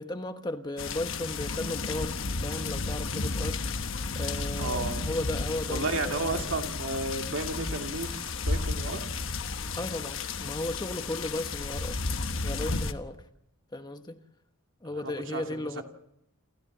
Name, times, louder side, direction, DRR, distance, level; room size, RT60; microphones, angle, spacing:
voice 1, 0.0-6.5 9.8-12.0 12.4-13.2 13.7-14.2 14.8-15.8, left 1 dB, 20° left, 1.1 m, -35 dB
sound 1, 0.8-12.9, left 3 dB, 60° left, 1.2 m, -33 dB
voice 2, 4.6-5.1 5.7-9.0 14.8-15.8, right 3 dB, 60° right, 2.5 m, -33 dB
29.0 x 14.0 x 7.3 m
head